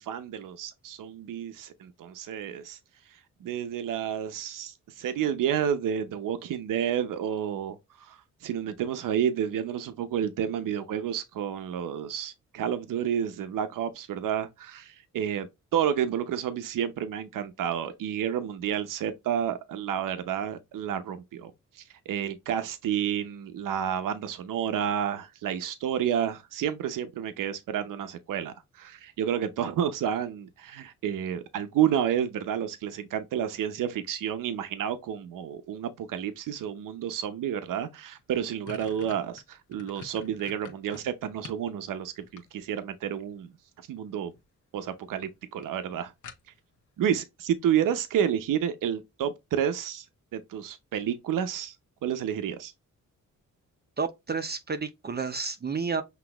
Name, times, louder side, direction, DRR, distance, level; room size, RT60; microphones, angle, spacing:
voice 1, 0.0-2.8 3.1-15.5 15.7-43.5 43.9-44.3 44.7-46.1 47.0-50.1 50.3-51.8 52.0-52.7, right 9 dB, 90° right, 0.7 m, -30 dB
sound 1, 37.8-37.9 38.2-41.7 42.1-42.9 44.0-44.4 44.8-44.9 45.2-45.3 45.6-45.7 46.2-46.8, left 6 dB, 70° left, 1.1 m, -47 dB
voice 2, 54.0-56.0, right 5 dB, 30° right, 0.6 m, -31 dB
6.0 x 3.0 x 2.3 m
cardioid pair, 95°, 31 cm